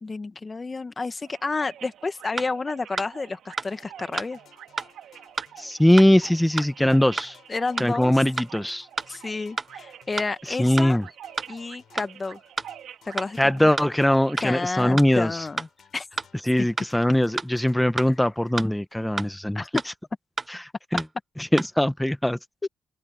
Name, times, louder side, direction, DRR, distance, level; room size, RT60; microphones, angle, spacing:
voice 1, 0.0-4.4 7.5-8.1 9.1-11.0 11.5-12.4 13.0-13.7 14.4-15.7 15.9-16.1 19.5-19.7 22.6-22.7, left 3 dB, 25° left, 1.2 m, -30 dB
sound 1, 1.2-14.4, right 10 dB, 75° right, 1.7 m, -46 dB
sound 2, 2.4-2.5 3.0-3.1 3.6-3.7 4.2-4.3 4.8-4.9 5.4-5.5 6.0-6.1 6.6-6.7 7.2-7.3 7.8-7.9 8.4-8.5 9.0-9.1 9.6-9.7 10.2-10.3 10.8-10.9 11.4-11.5 12.0-12.1 12.6-12.7 13.2-13.3 13.8-13.9 14.4-14.5 15.0-15.1 15.6-15.7 16.2-16.3 16.8-16.9 17.4-17.5 18.0-18.1 18.6-18.7 19.2-19.3 19.8-19.9 20.4-20.5 21.0-21.1 21.6-21.7, right 3 dB, 25° right, 0.4 m, -30 dB
sound 3, 3.7-19.1, left 9 dB, 65° left, 5.9 m, -58 dB
voice 2, 5.6-7.4 7.8-8.9 10.6-11.0 13.4-15.4 16.5-19.6 20.5-20.6 20.9-21.0 21.4-22.4, left 1 dB, 5° left, 1.0 m, -21 dB
cardioid pair, 90°, 0 cm